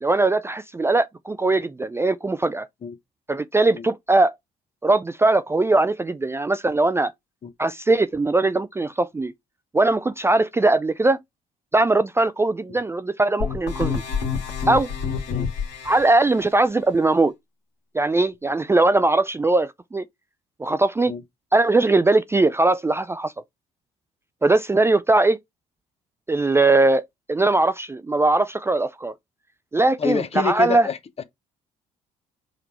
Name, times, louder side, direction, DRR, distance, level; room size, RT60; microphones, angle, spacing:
voice 1, 0.0-2.7 3.3-4.3 4.8-7.1 7.6-9.3 9.7-11.2 11.7-14.0 14.7-14.9 15.8-17.3 17.9-20.0 20.6-21.1 21.5-23.3 24.4-25.4 26.3-27.0 27.3-29.1 29.7-30.9, right 2 dB, 15° right, 0.4 m, -20 dB
sound 1, 13.4-16.1, left 6 dB, 70° left, 2.1 m, -27 dB
voice 2, 30.0-31.2, left 6 dB, 40° left, 0.8 m, -27 dB
5.0 x 3.2 x 2.9 m
hypercardioid pair, 60°, 17 cm